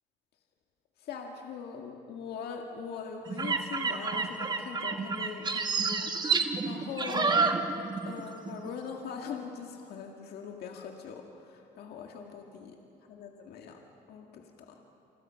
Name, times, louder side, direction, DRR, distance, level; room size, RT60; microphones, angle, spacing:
voice 1, 1.0-7.6 8.0-12.8 13.1-13.8 14.1-14.8, left 6 dB, 70° left, 2 dB, 1.9 m, -41 dB
sound 1, 3.3-8.2 8.5-8.7, right 4 dB, 25° right, 1.6 m, -29 dB
29.5 x 25.0 x 5.7 m, 2.9 s
cardioid pair, 110°, 17 cm